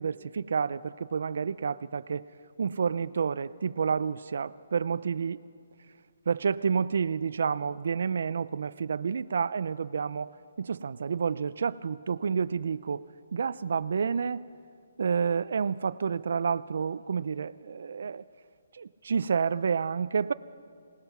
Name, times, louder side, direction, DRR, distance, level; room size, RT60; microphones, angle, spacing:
voice 1, 0.0-2.2 2.6-5.4 6.3-10.3 10.6-13.0 13.3-14.4 15.0-18.2 18.7-20.3, right 6 dB, 60° right, 15 dB, 0.4 m, -29 dB
26.0 x 18.5 x 6.0 m, 2.2 s
hypercardioid pair, 170°, 0 cm